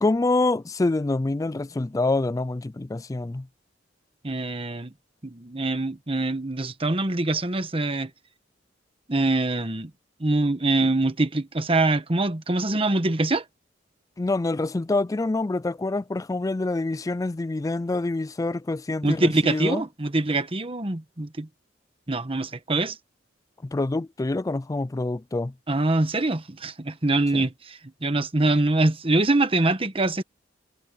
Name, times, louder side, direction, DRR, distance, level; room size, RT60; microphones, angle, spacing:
voice 1, 0.0-3.5 14.2-19.8 23.6-25.5 27.3-27.5, left 2 dB, 20° left, 0.3 m, -26 dB
voice 2, 4.2-4.9 5.2-8.1 9.1-9.9 10.2-13.4 19.0-21.5 22.1-23.0 25.7-30.2, right 2 dB, 30° right, 1.2 m, -24 dB
head